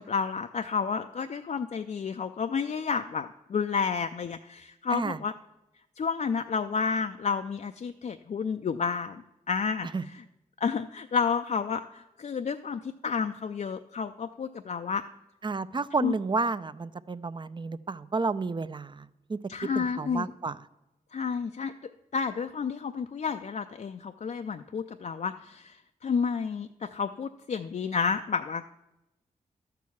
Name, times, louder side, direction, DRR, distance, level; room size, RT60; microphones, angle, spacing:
voice 1, 0.0-5.3 6.0-9.2 9.5-10.2 10.6-15.0 16.0-16.1 19.5-20.3 21.1-21.7 22.1-25.8 26.0-28.7, left 5 dB, 50° left, 7 dB, 0.4 m, -30 dB
voice 2, 15.4-19.0 19.3-19.4 19.8-20.6, right 3 dB, 30° right, 15 dB, 0.5 m, -31 dB
12.0 x 4.7 x 7.1 m, 0.94 s
cardioid pair, 50°, 16 cm